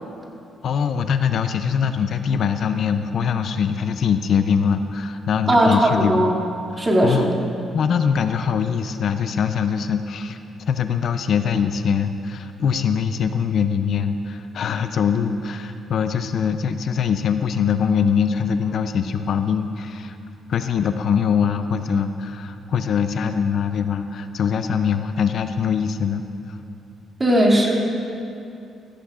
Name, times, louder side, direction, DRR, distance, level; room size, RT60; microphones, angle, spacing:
voice 1, 0.6-6.3 6.7-7.3 7.7-10.4 10.7-20.2 20.5-26.6, left 7 dB, 65° left, 9 dB, 0.5 m, -22 dB
voice 2, 5.5-6.3 6.8-7.3 27.2-27.7, right 1 dB, 25° right, -2 dB, 2.4 m, -17 dB
16.5 x 14.0 x 2.5 m, 2.6 s
cardioid pair, 90°, 0 cm